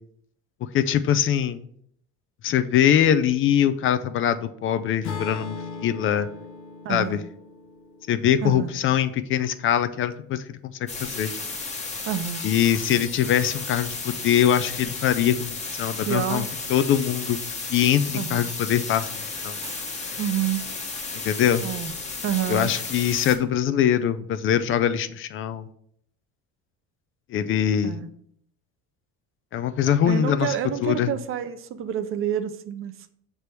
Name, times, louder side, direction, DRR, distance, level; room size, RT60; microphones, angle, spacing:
voice 1, 0.7-1.6 2.4-6.3 6.9-7.2 8.1-10.7 11.0-11.3 12.4-17.4 17.7-19.1 19.4-19.6 21.2-21.7 22.5-25.7 27.3-28.0 29.5-30.5 30.8-31.1, left 9 dB, 45° left, 12 dB, 0.4 m, -22 dB
Acoustic guitar / Strum, 5.0-9.3, left 5 dB, 70° left, 0.9 m, -38 dB
voice 2, 6.8-7.2 8.4-8.7 12.1-12.5 16.0-16.5 18.1-18.4 20.2-20.6 21.6-21.9 22.2-22.7 27.8-28.1 30.0-32.9, right 10 dB, 45° right, 10 dB, 0.5 m, -28 dB
sound 1, 10.9-23.3, left 4 dB, 25° left, 1.0 m, -33 dB
Shatter, 19.6-20.2, right 2 dB, 10° right, 1.1 m, -43 dB
6.7 x 3.4 x 4.5 m, 0.67 s
cardioid pair, 135°, 30 cm